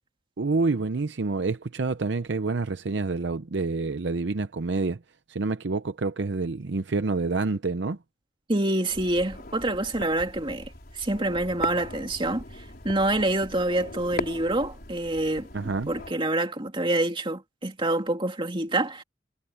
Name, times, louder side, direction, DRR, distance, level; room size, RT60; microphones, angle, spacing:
voice 1, 0.4-5.0 5.3-8.0 15.5-15.9, right 3 dB, 60° right, 0.6 m, -27 dB
voice 2, 8.5-15.5 15.9-19.0, right 1 dB, 25° right, 2.6 m, -27 dB
sound 1, 8.9-16.1, left 2 dB, 50° left, 4.7 m, -39 dB
head